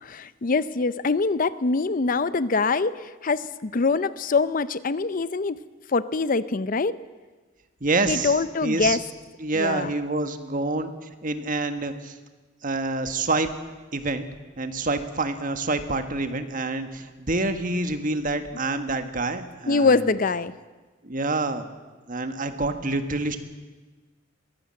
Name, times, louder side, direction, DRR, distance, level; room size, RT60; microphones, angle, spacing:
voice 1, 0.0-5.6 5.9-7.0 8.1-9.0 9.6-9.9 19.7-20.5, left 4 dB, 45° left, 16 dB, 0.6 m, -24 dB
voice 2, 7.8-8.3 8.6-9.0 9.4-10.9 11.2-12.1 12.6-13.5 13.9-14.3 14.6-20.0 21.0-21.6 22.1-23.4, right 2 dB, 45° right, 8 dB, 1.5 m, -27 dB
22.0 x 16.0 x 7.7 m, 1.3 s
head